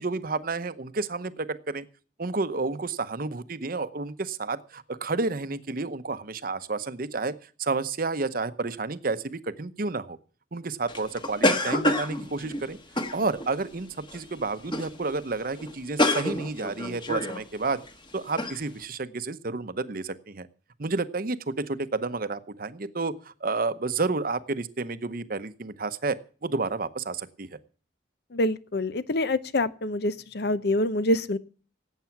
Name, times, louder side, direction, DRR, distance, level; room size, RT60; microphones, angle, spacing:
voice 1, 0.0-1.9 2.2-7.3 7.6-10.2 10.5-12.8 13.1-17.8 18.1-20.5 20.8-27.5, right 3 dB, 50° right, 13 dB, 0.8 m, -30 dB
sound 1, 10.9-13.6 14.1-14.3 14.7-15.0 15.2-15.3 15.6-17.4 17.9-18.0 18.4-18.6, left 1 dB, 25° left, 1.3 m, -27 dB
voice 2, 28.3-31.4, left 1 dB, 60° left, 15 dB, 0.8 m, -26 dB
17.5 x 8.3 x 5.9 m, 0.40 s
head